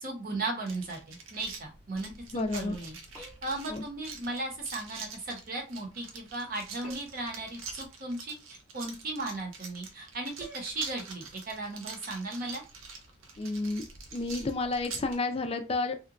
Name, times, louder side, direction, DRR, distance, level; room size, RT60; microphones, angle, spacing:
voice 1, 0.0-12.6, right 2 dB, 45° right, 1 dB, 0.8 m, -36 dB
sound 1, 0.7-15.2, right 4 dB, 90° right, 0.7 m, -45 dB
voice 2, 2.3-2.8 3.7-3.8 13.4-13.8 14.1-15.9, left 3 dB, 30° left, 8 dB, 0.4 m, -31 dB
sound 2, 3.1-3.6 6.8-7.3 10.4-10.7, right 2 dB, 5° right, 0.8 m, -49 dB
2.8 x 2.2 x 2.5 m, 0.29 s
head